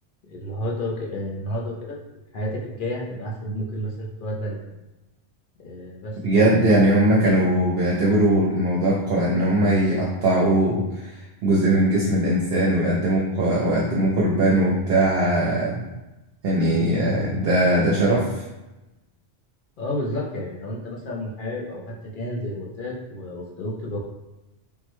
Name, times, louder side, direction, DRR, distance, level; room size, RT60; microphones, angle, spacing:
voice 1, 0.2-4.7 5.6-6.2 19.8-24.0, left 1 dB, 55° left, -2 dB, 0.7 m, -31 dB
voice 2, 6.2-15.9 16.4-18.4, right 1 dB, 65° right, -4 dB, 0.8 m, -20 dB
3.5 x 2.1 x 2.9 m, 1.0 s
omnidirectional pair, 1.2 m